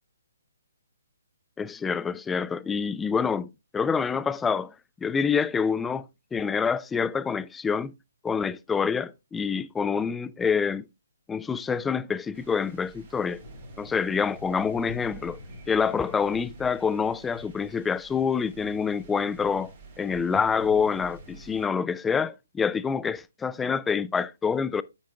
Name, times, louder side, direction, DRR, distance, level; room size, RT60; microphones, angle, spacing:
voice 1, 1.6-3.5 3.7-4.7 5.0-6.1 6.3-7.9 8.2-10.8 11.3-13.4 13.8-15.4 15.7-19.7 20.0-24.8, left 6 dB, 10° left, 0.3 m, -26 dB
sound 1, 12.3-21.7, right 2 dB, 30° right, 5.2 m, -47 dB
9.1 x 8.6 x 2.3 m
hypercardioid pair, 145°, 0 cm